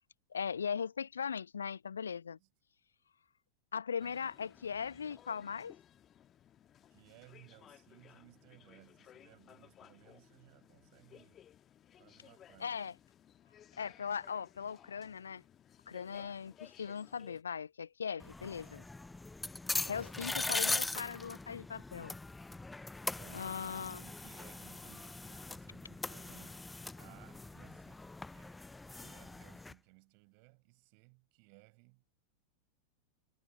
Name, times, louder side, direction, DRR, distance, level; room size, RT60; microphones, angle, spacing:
voice 1, 0.3-2.4 3.7-5.8 12.6-12.9 13.8-15.4 15.9-18.8 19.9-22.1 23.3-24.0, left 6 dB, 70° left, 0.5 m, -39 dB
sound 1, 4.0-17.4, left 10 dB, 25° left, 1.3 m, -60 dB
voice 2, 4.0-4.3 6.9-11.4 12.0-12.8 23.0-23.5 23.8-26.7 27.0-28.6 28.9-32.0, right 40 dB or more, 45° right, 6.6 m, -61 dB
sound 2, 18.2-29.7, left 2 dB, 10° left, 0.4 m, -40 dB
figure-of-eight pair, 90°, 0 cm